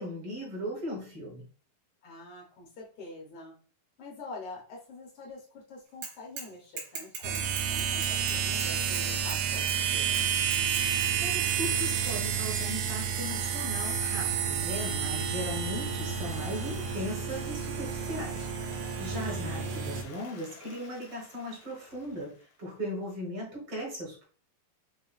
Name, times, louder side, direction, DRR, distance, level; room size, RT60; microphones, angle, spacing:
voice 1, 0.0-1.5 11.2-18.5 19.0-22.3 22.6-24.2, equal, 50° right, -3 dB, 2.0 m, -38 dB
voice 2, 2.0-3.5 4.0-10.7 19.1-19.9, left 2 dB, 80° left, -2 dB, 1.2 m, -46 dB
Bicycle / Mechanisms, 6.0-6.5 6.8-9.4 9.7-9.8 10.1-11.1, right 5 dB, 70° right, 2.5 m, -39 dB
sound 1, 7.2-20.0, right 7 dB, 85° right, 2.4 m, -30 dB
Applause, 15.6-22.8, left 5 dB, 65° left, 1.7 m, -51 dB
7.2 x 2.5 x 2.3 m, 0.39 s
omnidirectional pair, 4.0 m